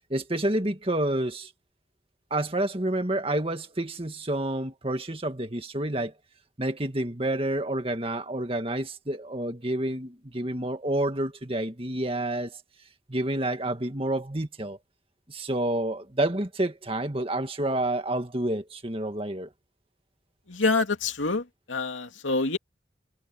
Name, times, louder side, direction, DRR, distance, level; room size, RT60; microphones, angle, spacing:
voice 1, 0.1-1.5 2.3-6.1 6.6-12.6 13.1-14.8 15.3-19.5, right 1 dB, 30° right, 1.9 m, -29 dB
voice 2, 20.5-21.4 21.7-22.6, left 3 dB, 90° left, 2.7 m, -26 dB
head